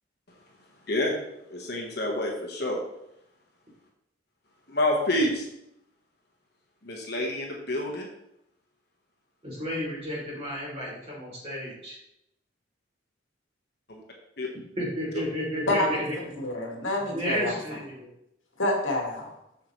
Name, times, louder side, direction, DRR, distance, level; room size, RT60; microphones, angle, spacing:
voice 1, 1.5-2.8 4.7-5.5 6.8-8.1 13.9-14.0 14.4-14.5 15.1-15.2, left 1 dB, 50° left, 0 dB, 1.4 m, -28 dB
voice 2, 9.4-12.0 14.8-16.0 17.0-18.1, equal, 30° right, -5 dB, 3.2 m, -32 dB
voice 3, 16.4-17.6 18.6-19.3, left 1 dB, 75° left, 0 dB, 1.8 m, -27 dB
7.9 x 6.7 x 3.2 m, 0.81 s
head